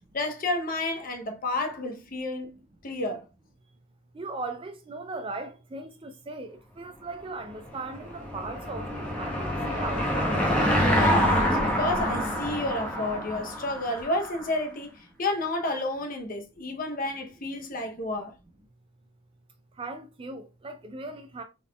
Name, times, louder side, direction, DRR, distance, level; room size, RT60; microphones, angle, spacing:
voice 1, 0.1-3.2 11.0-18.3, left 2 dB, 40° left, 0.7 m, -31 dB
voice 2, 4.1-10.4 19.7-21.4, right 3 dB, 25° right, 0.3 m, -38 dB
Car passing by / Engine, 7.6-14.4, equal, 5° left, 0.7 m, -26 dB
3.7 x 3.6 x 2.2 m
head